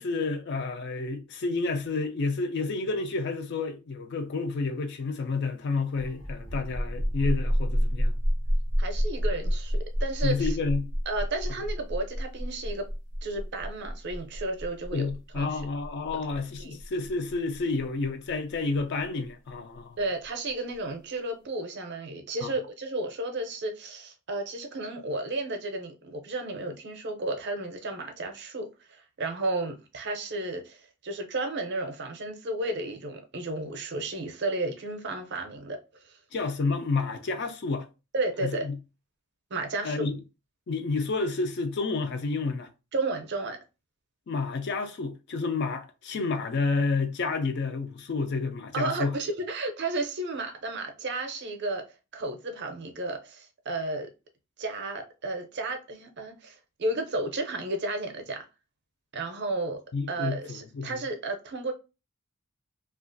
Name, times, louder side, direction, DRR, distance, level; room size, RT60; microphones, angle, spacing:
voice 1, 0.0-8.1 10.2-10.9 14.9-20.0 22.4-22.5 36.3-37.9 38.4-38.8 39.8-40.2 40.7-42.7 44.3-49.1 59.9-61.0, left 3 dB, 50° left, 0.4 m, -30 dB
sound 1, 5.9-19.3, equal, 85° left, 1.3 m, -29 dB
voice 2, 8.8-10.6 11.1-12.9 13.2-15.6 16.6-16.8 20.0-35.8 36.0-36.1 38.1-38.7 39.5-40.1 42.9-43.6 48.7-51.8 52.1-54.1 54.6-58.4 59.1-59.8 60.1-61.7, right 2 dB, 50° right, 0.5 m, -33 dB
2.8 x 2.4 x 2.5 m
head